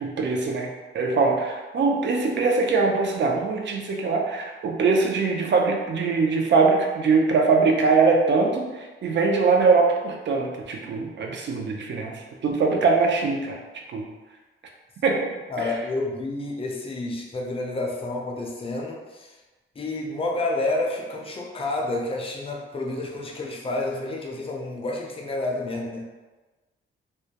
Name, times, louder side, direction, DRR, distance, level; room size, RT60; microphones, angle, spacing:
voice 1, 0.0-12.1 12.4-13.6 13.9-14.1 15.0-15.3 15.6-15.7, right 4 dB, 60° right, 1 dB, 0.4 m, -22 dB
voice 2, 15.5-19.3 19.8-26.0, left 2 dB, 25° left, -1 dB, 0.4 m, -29 dB
2.2 x 2.1 x 2.8 m, 1.2 s
wide cardioid pair, 135°, 21 cm